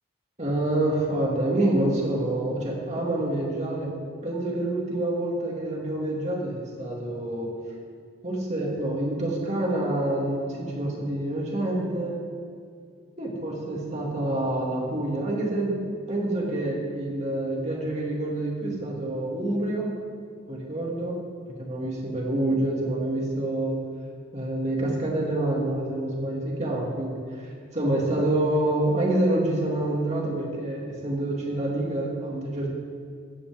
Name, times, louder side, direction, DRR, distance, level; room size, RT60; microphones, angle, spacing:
voice 1, 0.4-4.0 4.2-7.5 8.2-12.2 13.2-19.9 20.5-21.2 21.6-23.8 24.3-32.7, right 1 dB, 35° right, -2 dB, 2.6 m, -27 dB
16.0 x 12.0 x 3.8 m, 2.2 s
head